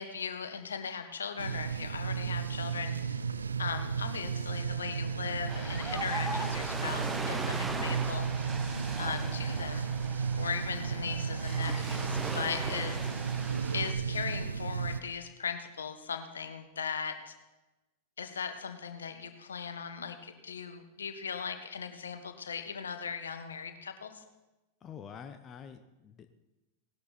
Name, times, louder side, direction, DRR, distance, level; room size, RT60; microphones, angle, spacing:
voice 1, 0.0-8.4 9.0-9.9 10.3-13.0 13.7-17.3 18.2-24.2, left 6 dB, 70° left, 8 dB, 1.4 m, -38 dB
sound 1, 1.4-15.0, right 6 dB, 75° right, 0.5 m, -34 dB
Ocean, 5.5-13.9, right 2 dB, 10° right, 1.3 m, -39 dB
voice 2, 24.8-26.3, left 7 dB, 25° left, 8 dB, 0.9 m, -47 dB
18.5 x 11.5 x 4.3 m, 1.0 s
figure-of-eight pair, 90°, 0 cm